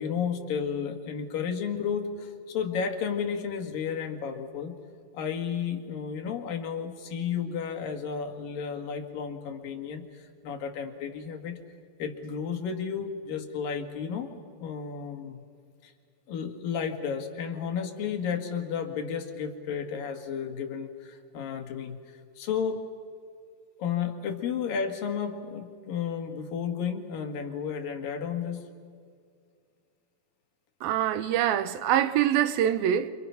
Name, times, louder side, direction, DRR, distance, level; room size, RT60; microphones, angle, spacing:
voice 1, 0.0-4.8 5.1-11.6 12.0-14.3 14.6-15.4 15.8-15.9 16.3-22.8 23.8-28.7, left 7 dB, 70° left, 3.6 m, -32 dB
voice 2, 30.8-33.1, right 10 dB, 85° right, 2.8 m, -24 dB
28.5 x 28.5 x 5.9 m
omnidirectional pair, 4.2 m